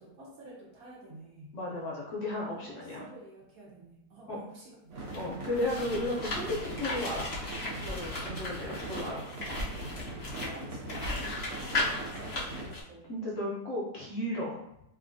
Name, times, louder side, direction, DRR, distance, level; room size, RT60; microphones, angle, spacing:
voice 1, 0.0-1.6 2.5-5.0 10.2-13.1, right 1 dB, 60° right, -4 dB, 1.2 m, -50 dB
voice 2, 1.5-3.0 4.3-4.4 5.1-9.2 13.1-14.6, left 1 dB, 60° left, -4 dB, 0.8 m, -34 dB
sound 1, 4.9-12.7, right 2 dB, 75° right, 1.5 m, -41 dB
sound 2, 5.0-12.8, left 2 dB, 85° left, 0.3 m, -36 dB
3.0 x 2.8 x 2.5 m, 0.82 s
omnidirectional pair, 1.9 m